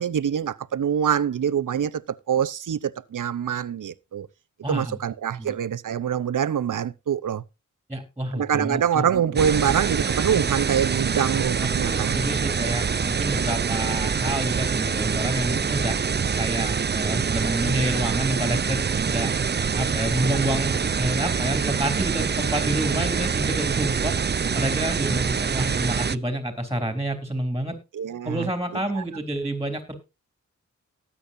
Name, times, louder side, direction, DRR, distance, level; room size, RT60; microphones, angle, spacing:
voice 1, 0.0-4.3 4.7-7.4 8.3-12.3 13.5-13.6 22.9-23.0 27.9-28.5 29.0-29.1, right 8 dB, 80° right, 0.8 m, -25 dB
voice 2, 4.6-5.0 5.4-5.5 7.9-9.0 9.3-9.4 11.6-16.0 16.4-19.3 19.7-24.1 24.5-27.8 28.2-29.9, right 1 dB, 10° right, 3.7 m, -28 dB
sound 1, 9.4-26.2, right 6 dB, 35° right, 0.5 m, -25 dB
18.5 x 8.6 x 2.7 m
wide cardioid pair, 80°, 31 cm